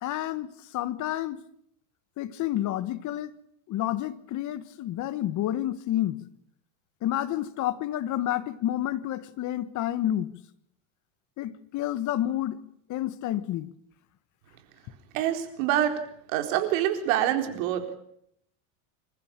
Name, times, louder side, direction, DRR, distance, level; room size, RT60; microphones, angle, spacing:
voice 1, 0.0-1.4 2.2-3.3 3.7-6.3 7.0-10.4 11.4-12.6 12.9-13.7, left 13 dB, 45° left, 1.4 m, -29 dB
voice 2, 15.1-15.9 16.3-18.0, right 11 dB, 70° right, 4.3 m, -26 dB
26.0 x 15.0 x 8.9 m
supercardioid pair, 125°, 42 cm